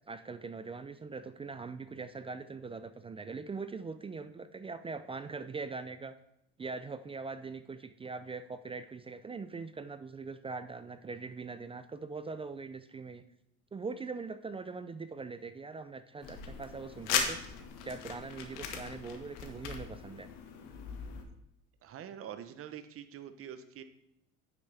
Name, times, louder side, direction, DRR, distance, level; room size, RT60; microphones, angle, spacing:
voice 1, 0.1-6.1 6.6-13.2 13.7-17.4 17.8-20.3, right 4 dB, 15° right, 11 dB, 0.4 m, -42 dB
sound 1, 16.2-21.2, left 7 dB, 70° left, 1.5 m, -38 dB
voice 2, 21.8-23.8, right 9 dB, 45° right, 9 dB, 0.8 m, -45 dB
9.7 x 6.9 x 3.4 m, 0.78 s
supercardioid pair, 95°, 33 cm